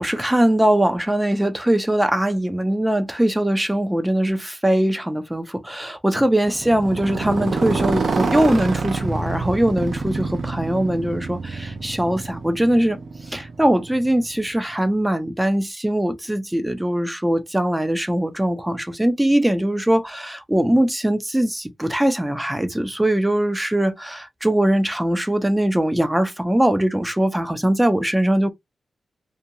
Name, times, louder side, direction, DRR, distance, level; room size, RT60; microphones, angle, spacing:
voice 1, 0.0-13.0 13.3-28.5, right 1 dB, 10° right, 0.4 m, -21 dB
Motorcycle, 6.4-14.5, right 4 dB, 65° right, 0.6 m, -27 dB
2.6 x 2.2 x 2.7 m
wide cardioid pair, 95°, 0 cm